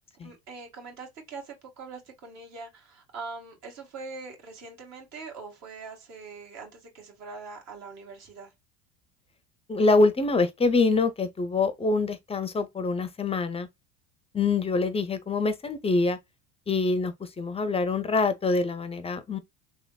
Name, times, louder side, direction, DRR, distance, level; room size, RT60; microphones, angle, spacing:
voice 1, 0.1-8.5, right 4 dB, 55° right, 1.9 m, -42 dB
voice 2, 9.7-13.7 14.3-16.2 16.7-19.4, left 3 dB, 20° left, 0.5 m, -25 dB
3.4 x 2.9 x 2.3 m
supercardioid pair, 95°, 32 cm